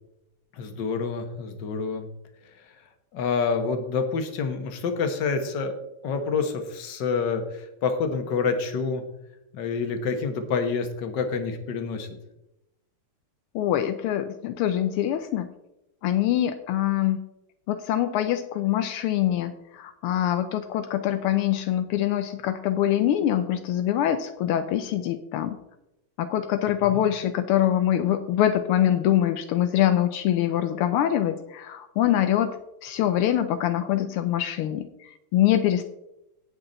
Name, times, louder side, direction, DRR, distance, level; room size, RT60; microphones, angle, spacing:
voice 1, 0.5-2.1 2.4-2.8 3.1-5.7 6.0-9.0 9.5-12.1 26.8-27.1, left 5 dB, 55° left, 6 dB, 1.8 m, -28 dB
voice 2, 13.5-15.5 16.0-17.2 17.7-25.6 26.2-32.5 32.8-35.8, left 11 dB, 80° left, 9 dB, 1.5 m, -24 dB
17.5 x 5.9 x 4.0 m, 0.89 s
omnidirectional pair, 2.4 m